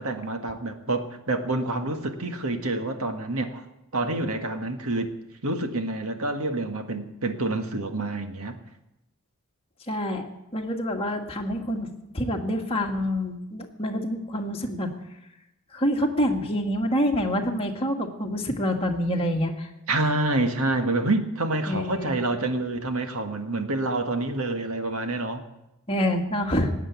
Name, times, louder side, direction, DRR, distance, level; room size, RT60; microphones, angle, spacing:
voice 1, 0.0-3.6 3.9-5.1 5.4-8.5 19.9-25.4, right 2 dB, 70° right, 6 dB, 1.7 m, -27 dB
voice 2, 9.9-14.9 15.7-19.7 21.7-22.1 25.9-26.7, equal, 25° left, 1 dB, 2.0 m, -27 dB
18.5 x 8.1 x 9.5 m, 0.90 s
head